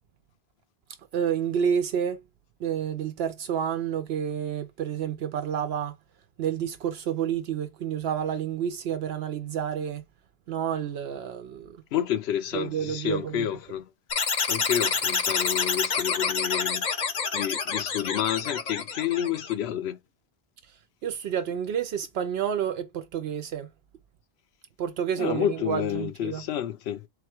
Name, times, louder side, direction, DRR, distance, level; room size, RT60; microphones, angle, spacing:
voice 1, 1.1-2.2 2.6-5.9 6.4-10.0 10.5-11.8 12.5-13.5 21.0-23.7 24.8-26.4, right 8 dB, 75° right, 0.8 m, -29 dB
voice 2, 11.9-13.9 14.5-16.9 17.3-20.0 25.2-27.1, left 11 dB, 80° left, 0.9 m, -29 dB
sound 1, 14.1-19.5, left 5 dB, 50° left, 0.8 m, -27 dB
4.1 x 2.3 x 4.3 m
omnidirectional pair, 1.1 m